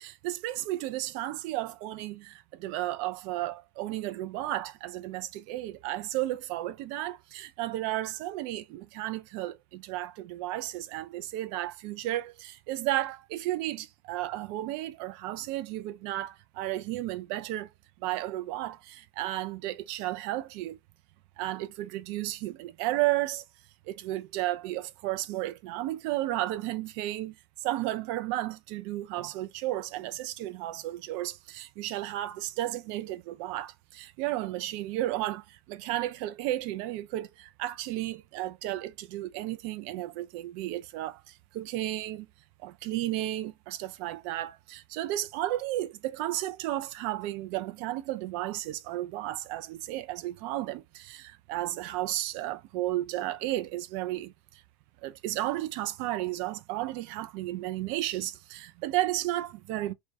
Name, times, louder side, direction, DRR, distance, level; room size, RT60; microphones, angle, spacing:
voice 1, 0.0-17.7 18.0-20.8 21.4-23.4 23.9-27.3 27.6-42.3 42.6-54.3 55.0-59.9, right 15 dB, 55° right, 0.4 m, -33 dB
2.3 x 2.1 x 2.6 m
hypercardioid pair, 85°, 13 cm